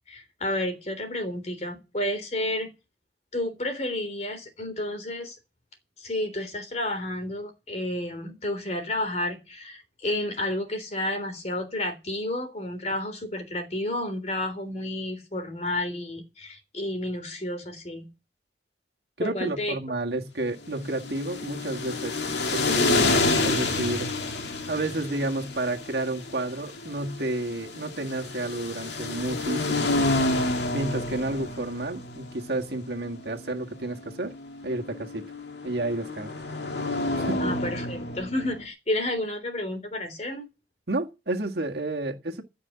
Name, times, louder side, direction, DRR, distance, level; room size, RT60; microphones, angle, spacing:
voice 1, 0.1-2.7 3.3-5.4 6.0-18.1 19.2-19.8 37.4-40.5, left 1 dB, 40° left, 3.4 m, -31 dB
voice 2, 19.2-22.2 22.5-24.2 24.7-34.3 34.6-35.2 35.6-36.3 37.1-37.5 40.9-42.4, right 2 dB, 65° right, 1.8 m, -31 dB
sound 1, 20.8-38.7, left 2 dB, 75° left, 2.1 m, -29 dB
16.0 x 5.4 x 9.5 m
head